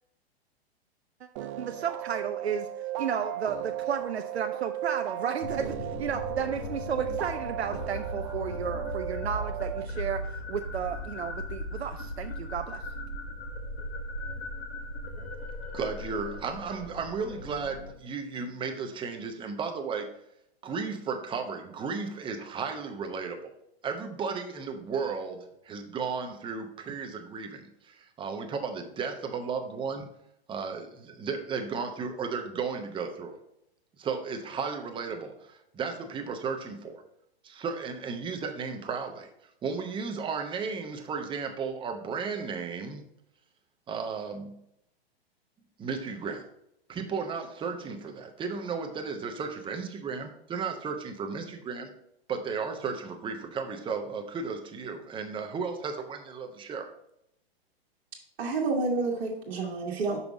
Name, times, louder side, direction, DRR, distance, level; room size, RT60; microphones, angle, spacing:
sound 1, 1.4-9.9, right 13 dB, 30° right, 0.4 m, -36 dB
voice 1, 1.4-2.7 3.0-12.8, right 7 dB, 85° right, 7 dB, 0.5 m, -33 dB
sound 2, 5.4-17.9, left 1 dB, 85° left, 1.3 m, -38 dB
voice 2, 15.7-20.1 20.6-23.5 23.8-30.1 30.5-33.4 34.0-37.0 37.4-39.3 39.6-43.1 43.9-44.5 45.8-46.5 46.9-51.9 52.3-56.9, right 5 dB, 15° right, 5 dB, 0.8 m, -34 dB
voice 3, 58.4-60.2, right 3 dB, 65° right, -3 dB, 1.5 m, -29 dB
5.8 x 5.6 x 3.9 m, 0.78 s
figure-of-eight pair, 110°, 31 cm